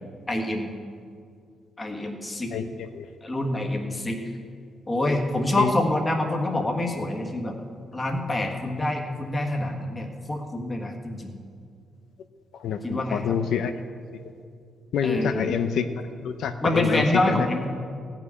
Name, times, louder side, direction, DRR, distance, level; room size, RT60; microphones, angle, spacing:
voice 1, 0.3-0.7 1.8-2.5 3.2-4.2 4.9-7.6 7.9-11.3 12.8-13.4 15.0-15.5 16.6-17.7, left 1 dB, 15° left, 1 dB, 1.5 m, -26 dB
voice 2, 12.5-13.7 14.9-15.9 16.2-17.5, left 7 dB, 70° left, 7 dB, 0.6 m, -27 dB
16.0 x 6.0 x 9.5 m, 2.3 s
cardioid pair, 145°, 0 cm